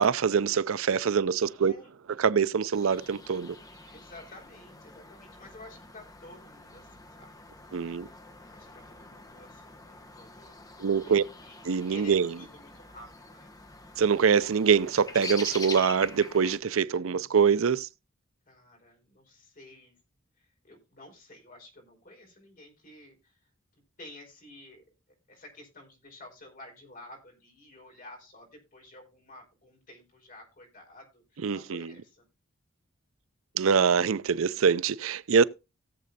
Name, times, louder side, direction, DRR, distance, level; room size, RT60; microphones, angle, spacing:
voice 1, 0.0-1.7 2.2-3.6 7.7-8.1 10.8-11.2 11.6-12.3 14.0-17.9 31.4-31.9 33.6-35.4, right 6 dB, 85° right, 0.5 m, -24 dB
voice 2, 1.6-1.9 3.9-7.3 8.5-11.6 11.9-13.5 16.9-17.6 18.5-19.9 20.4-23.3 24.0-24.8 25.3-32.3, left 1 dB, 45° left, 4.7 m, -51 dB
sound 1, 2.7-16.6, left 2 dB, 20° left, 1.1 m, -45 dB
17.0 x 7.7 x 2.6 m
head